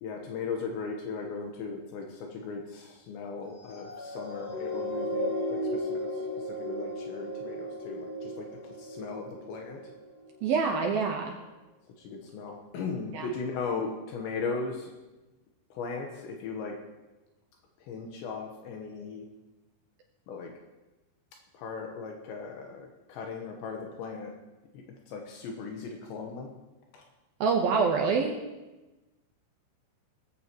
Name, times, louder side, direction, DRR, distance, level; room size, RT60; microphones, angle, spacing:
voice 1, 0.0-9.8 12.0-14.9 15.7-16.8 17.8-19.3 20.3-20.5 21.5-24.3 24.7-26.5 26.9-27.0, left 4 dB, 75° left, 1 dB, 3.4 m, -38 dB
sound 1, 3.6-10.3 10.9-11.0, left 1 dB, 30° left, 3.8 m, -35 dB
voice 2, 10.4-11.3 13.1-13.3 27.4-28.4, right 5 dB, 75° right, 2 dB, 2.4 m, -26 dB
19.0 x 15.0 x 3.1 m, 1.1 s
omnidirectional pair, 5.2 m